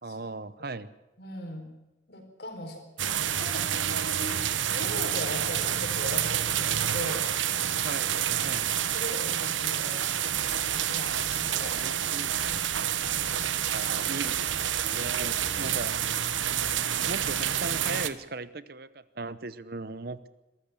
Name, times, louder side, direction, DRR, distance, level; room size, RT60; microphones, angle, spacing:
voice 1, 0.0-0.9 7.8-8.7 11.6-12.4 13.7-15.9 17.1-20.3, right 3 dB, 50° right, 15 dB, 0.9 m, -38 dB
voice 2, 1.2-1.7 2.1-4.4 4.7-7.3 8.9-10.2 10.7-11.9 15.5-15.8, left 1 dB, 55° left, 5 dB, 4.5 m, -39 dB
sound 1, 3.0-18.1, right 10 dB, 85° right, 1.1 m, -28 dB
sound 2, 10.3-18.3, equal, 15° right, 2.7 m, -49 dB
22.5 x 14.0 x 8.4 m, 0.99 s
head